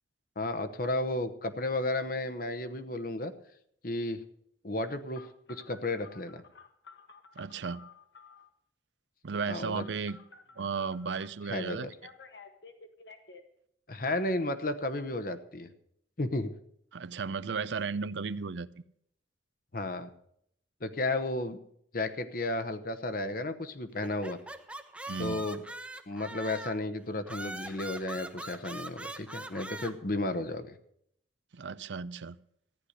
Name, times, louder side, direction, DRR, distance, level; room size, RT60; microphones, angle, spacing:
voice 1, 0.4-3.3 3.8-4.2 4.6-6.4 9.5-9.9 11.5-11.9 13.9-15.7 16.2-16.5 19.7-20.1 20.8-21.6 21.9-24.4 25.2-25.6 26.1-30.8, left 2 dB, 50° left, 1.0 m, -33 dB
Telephone, 5.1-8.5 9.8-11.3 11.8-13.4, left 4 dB, 70° left, 1.5 m, -52 dB
voice 2, 7.4-7.9 9.2-10.2 10.6-11.9 16.9-18.8 25.1-25.5 31.5-32.4, right 5 dB, 80° right, 0.5 m, -35 dB
sound 1, 24.0-26.8 27.3-29.9, right 2 dB, 5° right, 0.8 m, -42 dB
14.0 x 10.0 x 6.6 m
head